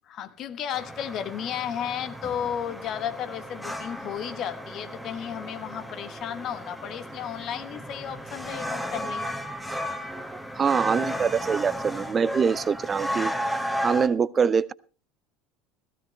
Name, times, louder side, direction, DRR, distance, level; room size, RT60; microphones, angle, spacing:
voice 1, 0.1-9.3, left 9 dB, 50° left, 10 dB, 1.4 m, -33 dB
sound 1, 0.7-14.1, equal, ahead, 1.9 m, -34 dB
voice 2, 10.5-13.3 13.8-14.7, right 6 dB, 30° right, 20 dB, 0.5 m, -24 dB
16.0 x 15.0 x 3.3 m, 0.36 s
hypercardioid pair, 70°, 0 cm